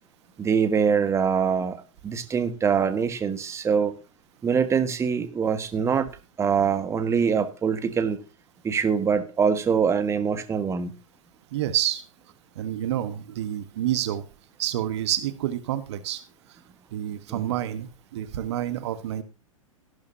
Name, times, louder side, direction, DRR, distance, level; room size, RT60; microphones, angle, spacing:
voice 1, 0.4-3.9 4.4-6.1 6.4-8.2 8.6-10.9 17.3-17.4, right 6 dB, 15° right, 11 dB, 1.5 m, -24 dB
voice 2, 11.5-12.0 12.6-14.2 14.6-16.2 16.9-19.2, right 12 dB, 50° right, 12 dB, 1.3 m, -28 dB
15.0 x 12.0 x 2.8 m, 0.31 s
figure-of-eight pair, 100°, 18 cm